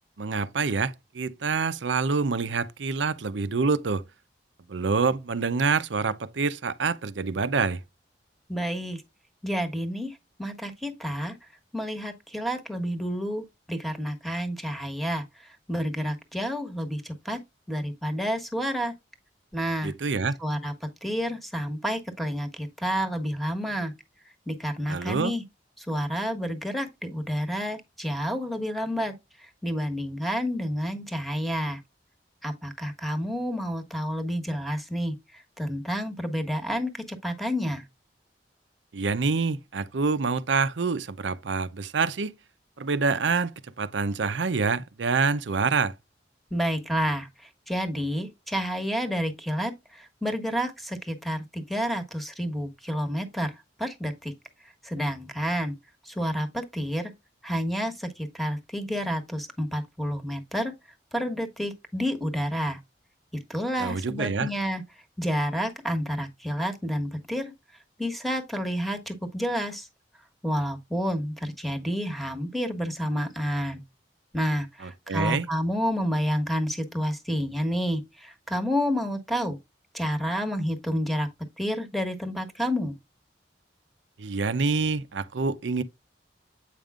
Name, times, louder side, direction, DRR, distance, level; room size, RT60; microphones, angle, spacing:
voice 1, 0.2-4.0 4.7-7.8 19.8-20.4 24.9-25.3 38.9-42.3 42.8-43.5 43.8-45.9 63.8-64.5 74.8-75.5 84.2-85.8, right 4 dB, 85° right, 0.6 m, -26 dB
voice 2, 8.5-9.0 9.4-11.4 11.7-15.2 15.7-17.4 17.7-18.9 19.5-19.9 20.4-23.9 24.5-25.4 25.8-29.1 29.4-31.8 32.4-37.8 46.5-47.3 47.7-53.5 53.8-54.3 54.8-55.7 56.1-57.1 57.4-60.7 61.1-62.8 63.5-64.8 65.2-67.5 68.0-69.9 70.4-73.8 74.3-79.6 79.9-81.3 81.6-82.9, equal, ahead, 1.2 m, -29 dB
8.3 x 5.2 x 2.4 m
head